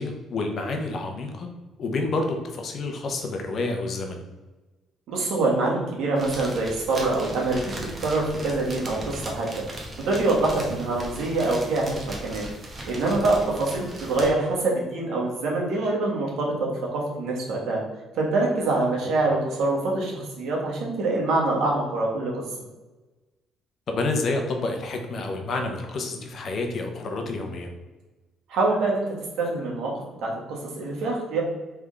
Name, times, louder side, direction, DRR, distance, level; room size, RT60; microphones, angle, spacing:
voice 1, 0.0-1.5 1.8-4.2 23.9-27.7, left 3 dB, 45° left, 3 dB, 0.7 m, -29 dB
voice 2, 5.1-7.6 8.0-9.5 10.0-12.5 12.9-16.5 16.9-17.8 18.2-22.3 28.5-29.1 29.4-31.4, right 2 dB, 75° right, -2 dB, 1.3 m, -25 dB
sound 1, 6.2-14.3, right 1 dB, 25° right, 0.9 m, -38 dB
3.5 x 3.5 x 3.7 m, 1.2 s
cardioid pair, 130°, 0 cm